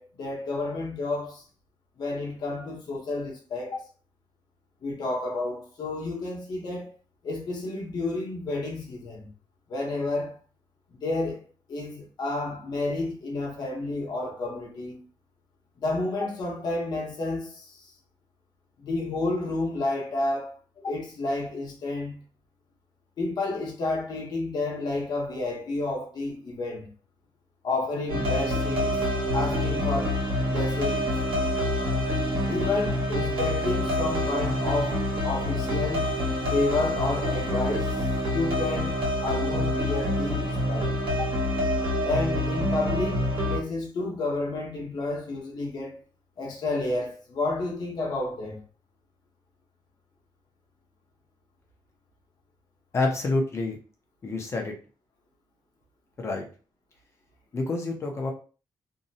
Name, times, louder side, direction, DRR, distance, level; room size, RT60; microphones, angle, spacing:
voice 1, 0.0-1.4 2.0-3.8 4.8-6.9 7.2-9.3 9.7-10.4 10.9-11.4 11.7-15.0 15.8-17.9 18.8-20.6 20.8-22.2 23.2-26.9 27.6-29.0 29.3-30.2 30.5-31.2 32.5-36.1 36.5-40.9 41.2-41.3 42.0-45.9 46.4-48.6, left 2 dB, 55° left, 0.9 m, -30 dB
sound 1, 28.1-43.6, left 1 dB, 85° right, 1.1 m, -27 dB
voice 2, 52.9-53.8 54.2-54.7 56.2-56.5 57.5-58.3, left 2 dB, 35° left, 0.5 m, -27 dB
2.7 x 2.1 x 2.7 m
wide cardioid pair, 175°, 9 cm